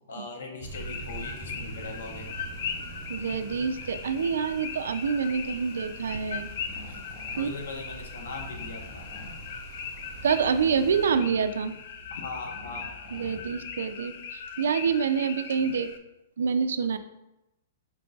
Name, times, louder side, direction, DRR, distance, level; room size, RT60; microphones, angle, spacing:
voice 1, 0.1-2.3 7.3-9.1 12.1-13.0, left 3 dB, 70° left, 2 dB, 0.7 m, -39 dB
sound 1, 0.6-11.1, right 3 dB, 20° right, 0.7 m, -44 dB
sound 2, 0.7-16.0, left 6 dB, 45° left, 0.3 m, -40 dB
voice 2, 3.1-6.5 7.4-7.5 10.2-11.8 13.1-15.9 16.4-17.0, right 6 dB, 85° right, 10 dB, 0.3 m, -27 dB
sound 3, 6.3-14.0, left 2 dB, 10° left, 0.6 m, -48 dB
4.5 x 2.3 x 3.9 m, 0.90 s
hypercardioid pair, 175°, 0 cm